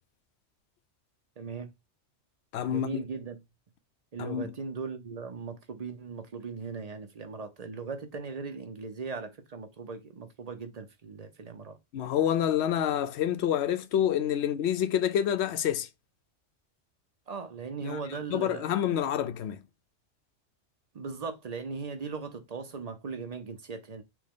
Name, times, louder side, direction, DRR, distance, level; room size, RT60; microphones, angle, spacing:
voice 1, 1.4-1.7 2.7-3.4 4.1-11.8 17.3-18.7 20.9-24.0, right 4 dB, 40° right, 0.6 m, -38 dB
voice 2, 2.5-2.9 4.2-4.5 11.9-15.9 17.8-18.0 18.3-19.6, left 10 dB, 70° left, 0.8 m, -27 dB
6.1 x 2.3 x 3.5 m
omnidirectional pair, 1.2 m